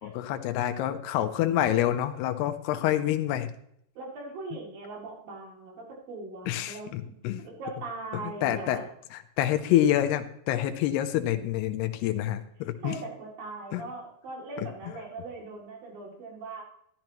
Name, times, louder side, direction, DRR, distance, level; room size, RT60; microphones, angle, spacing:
voice 1, 0.0-3.5 6.5-7.4 8.1-8.8 9.1-13.0 13.7-13.8 14.6-14.7, left 12 dB, 85° left, 8 dB, 2.7 m, -27 dB
voice 2, 4.0-6.9 7.4-8.8 12.8-16.6, right 3 dB, 60° right, -1 dB, 4.3 m, -40 dB
12.5 x 12.0 x 3.0 m, 0.70 s
omnidirectional pair, 4.7 m